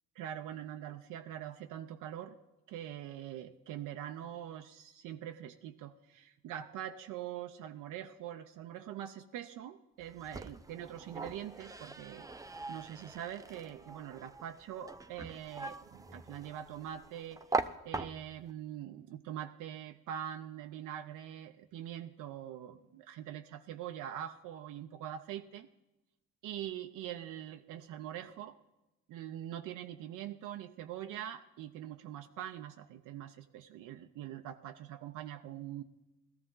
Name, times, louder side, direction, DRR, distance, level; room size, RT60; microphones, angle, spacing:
voice 1, 0.2-2.4 2.7-12.3 12.7-17.6 17.8-25.7 26.4-28.6 29.1-35.8, right 11 dB, 85° right, 6 dB, 0.6 m, -43 dB
sound 1, 10.0-18.5, right 3 dB, 10° right, 0.6 m, -42 dB
17.5 x 13.0 x 3.8 m, 1.0 s
cardioid pair, 90°, 30 cm